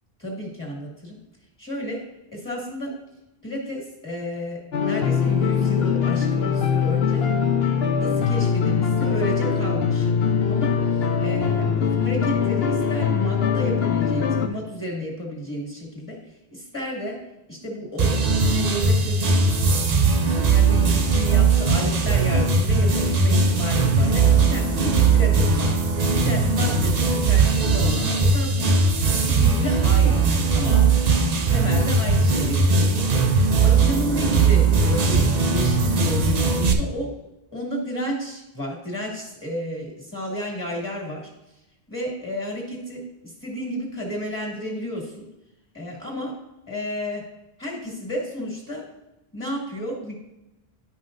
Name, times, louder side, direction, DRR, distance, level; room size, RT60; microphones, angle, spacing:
voice 1, 0.2-1.2 1.6-2.0 2.3-2.9 3.4-7.3 8.0-10.1 10.5-10.7 11.2-16.2 16.5-17.2 17.5-19.6 20.1-25.7 26.2-28.7 29.0-30.3 30.5-31.0 31.5-33.0 33.6-37.1 37.5-41.3 41.9-45.3 45.7-46.3 46.7-47.2 47.6-48.8 49.3-50.1, equal, 20° left, -2 dB, 2.1 m, -32 dB
sound 1, 4.7-14.5, left 7 dB, 70° left, 0.9 m, -22 dB
sound 2, 18.0-36.7, right 4 dB, 45° right, 0.6 m, -19 dB
10.5 x 5.5 x 2.6 m, 0.95 s
omnidirectional pair, 1.1 m